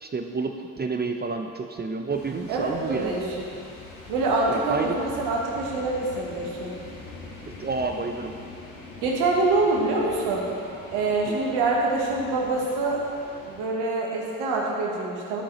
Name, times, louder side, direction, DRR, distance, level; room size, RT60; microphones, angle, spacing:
voice 1, 0.0-3.2 4.5-5.0 7.6-8.3 11.3-11.4, right 4 dB, 25° right, 4 dB, 0.6 m, -30 dB
sound 1, 2.1-13.6, left 3 dB, 90° left, 1.7 m, -43 dB
voice 2, 2.5-3.5 4.1-6.7 9.0-10.5 10.9-13.0 13.4-15.4, right 3 dB, 80° right, -2 dB, 1.4 m, -25 dB
12.5 x 4.7 x 4.3 m, 2.4 s
hypercardioid pair, 50°, 38 cm